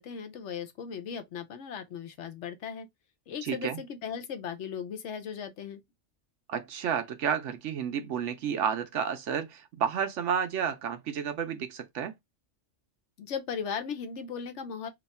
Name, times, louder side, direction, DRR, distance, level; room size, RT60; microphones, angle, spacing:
voice 1, 0.0-2.9 3.3-5.8 13.2-14.9, left 7 dB, 75° left, 1.0 m, -37 dB
voice 2, 3.4-3.8 6.5-12.1, right 7 dB, 80° right, 1.0 m, -31 dB
2.8 x 2.3 x 4.0 m
omnidirectional pair, 1.2 m